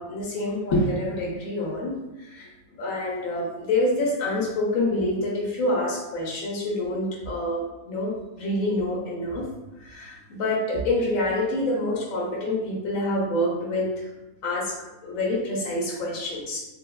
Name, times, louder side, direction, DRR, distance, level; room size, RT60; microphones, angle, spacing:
voice 1, 0.0-2.5 2.8-9.5 9.8-14.0 14.4-14.7 15.0-16.6, left 1 dB, 75° left, -4 dB, 1.0 m, -27 dB
3.3 x 2.1 x 2.2 m, 1.0 s
omnidirectional pair, 1.5 m